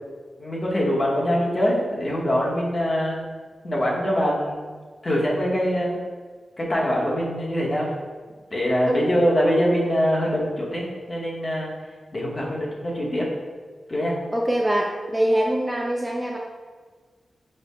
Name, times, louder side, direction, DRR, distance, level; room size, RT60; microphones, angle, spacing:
voice 1, 0.4-3.3 3.6-6.0 6.6-7.9 8.5-11.7 12.1-13.3 13.9-14.2, equal, 30° left, -3 dB, 0.8 m, -23 dB
voice 2, 8.8-9.3 14.3-16.4, right 1 dB, 10° right, -1 dB, 0.3 m, -24 dB
5.3 x 2.0 x 4.1 m, 1.5 s
wide cardioid pair, 165°, 0 cm